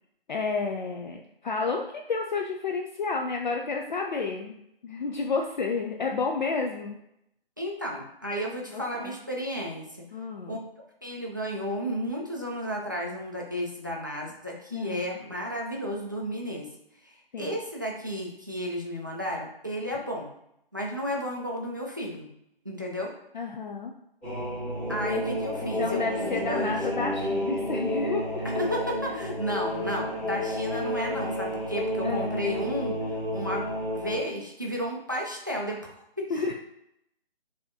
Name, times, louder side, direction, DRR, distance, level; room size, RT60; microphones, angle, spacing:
voice 1, 0.3-7.0 8.7-9.1 10.1-10.6 14.7-15.0 17.3-17.5 23.3-23.9 25.6-28.5 32.0-32.4 36.3-36.5, left 4 dB, 50° left, 2 dB, 0.4 m, -31 dB
voice 2, 7.6-10.0 10.5-10.6 11.0-16.7 17.0-20.3 20.7-22.3 22.6-23.1 24.9-26.7 28.4-33.6 33.9-36.3, equal, 20° right, -1 dB, 0.3 m, -33 dB
sound 1, 24.2-34.2, equal, 5° left, 0.9 m, -31 dB
3.9 x 2.9 x 2.6 m, 0.77 s
figure-of-eight pair, 145°, 29 cm